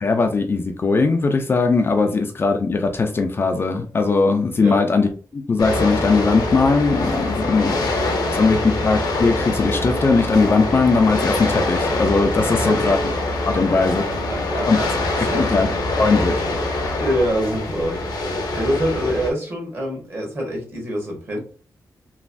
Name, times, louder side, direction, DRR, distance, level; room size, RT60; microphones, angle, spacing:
voice 1, 0.0-7.8 8.4-13.0 13.4-14.0 14.7-14.8 15.5-15.7 16.0-16.4 16.8-17.0, left 4 dB, 35° left, 5 dB, 0.4 m, -19 dB
sound 1, 5.6-19.3, left 2 dB, 90° left, 0.8 m, -24 dB
voice 2, 8.2-8.6 12.6-12.9 13.5-13.9 14.3-14.9 15.1-15.5 16.9-21.4, equal, 35° right, -1 dB, 1.3 m, -26 dB
3.1 x 2.5 x 2.5 m, 0.40 s
wide cardioid pair, 130°, 7 cm